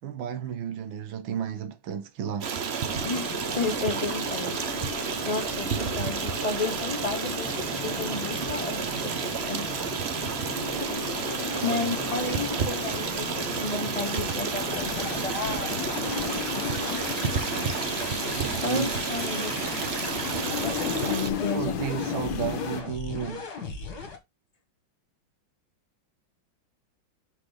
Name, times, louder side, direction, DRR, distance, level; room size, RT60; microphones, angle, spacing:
voice 1, 0.0-2.5 8.8-9.3 11.6-12.0 18.3-18.9 21.5-23.5, right 8 dB, 85° right, 1.8 m, -33 dB
Stream, 2.4-21.3, right 6 dB, 55° right, 0.7 m, -31 dB
sound 1, 2.9-22.8, left 7 dB, 75° left, 1.6 m, -36 dB
voice 2, 3.0-4.5 5.2-7.5 7.8-9.1 9.5-9.7 11.5-15.7 16.5-17.0 18.6-19.5 20.6-21.8, left 4 dB, 20° left, 1.5 m, -32 dB
sound 2, 14.7-24.2, left 4 dB, 55° left, 2.0 m, -37 dB
5.7 x 4.0 x 4.9 m
omnidirectional pair, 2.1 m